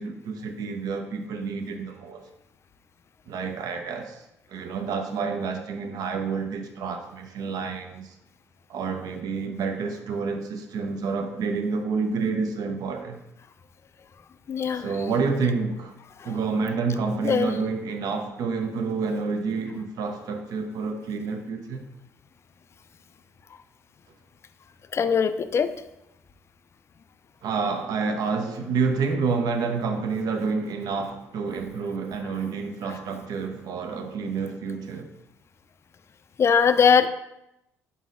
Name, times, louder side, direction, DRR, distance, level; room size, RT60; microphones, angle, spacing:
voice 1, 0.0-2.2 3.3-4.2 4.5-8.1 8.7-13.2 14.7-15.9 16.2-21.8 27.4-35.1, right 4 dB, 60° right, 5 dB, 0.6 m, -29 dB
voice 2, 14.5-14.9 16.2-16.3 17.2-17.5 24.9-25.8 36.4-37.1, left 6 dB, 40° left, 12 dB, 0.3 m, -21 dB
4.0 x 3.9 x 2.5 m, 0.87 s
hypercardioid pair, 50°, 7 cm